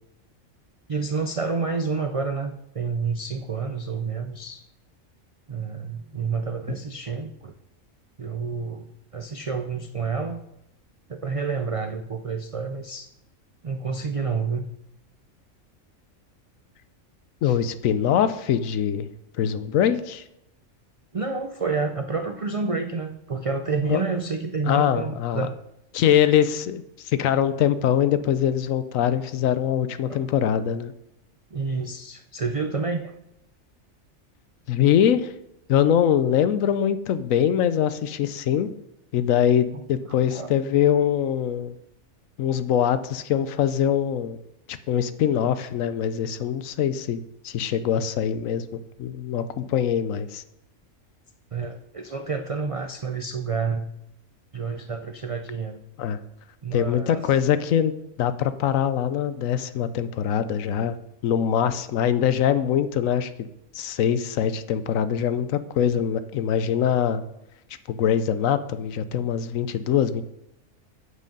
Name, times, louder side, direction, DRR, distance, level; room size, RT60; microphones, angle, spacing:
voice 1, 0.9-4.6 5.5-7.5 8.2-10.4 11.1-13.1 13.6-14.6 17.4-17.6 21.1-25.5 30.1-30.2 31.5-33.1 40.3-40.5 51.5-53.9 54.5-55.8 56.6-57.3, right 4 dB, 60° right, 7 dB, 0.3 m, -29 dB
voice 2, 17.4-19.1 19.4-20.2 23.9-24.0 24.7-25.5 25.9-30.9 34.7-35.3 35.7-38.7 39.1-41.7 42.4-44.4 44.7-48.6 49.0-50.4 56.0-56.2 56.7-61.0 61.2-63.5 63.7-67.2 67.9-70.2, left 9 dB, 80° left, 12 dB, 1.1 m, -23 dB
8.2 x 7.7 x 5.3 m, 0.83 s
omnidirectional pair, 1.4 m